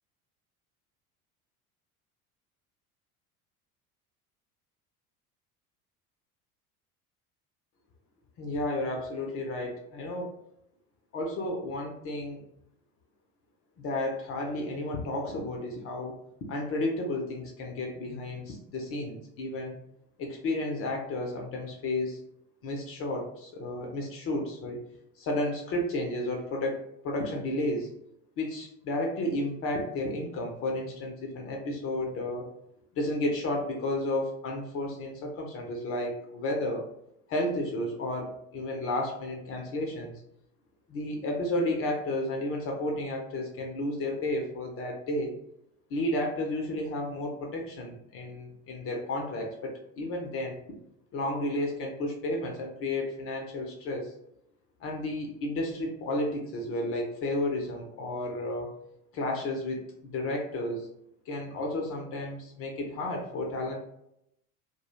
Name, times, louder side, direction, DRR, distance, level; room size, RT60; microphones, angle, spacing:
voice 1, 8.4-10.3 11.1-12.4 13.8-16.2 16.5-19.8 20.2-22.2 22.6-24.8 25.2-27.9 28.4-32.5 33.0-36.9 37.3-40.2 40.9-45.3 45.9-50.6 51.1-54.1 54.8-58.7 59.1-60.9 61.3-63.8, left 1 dB, 30° left, 1 dB, 0.5 m, -32 dB
2.2 x 2.1 x 2.9 m, 0.77 s
figure-of-eight pair, 65°, 44 cm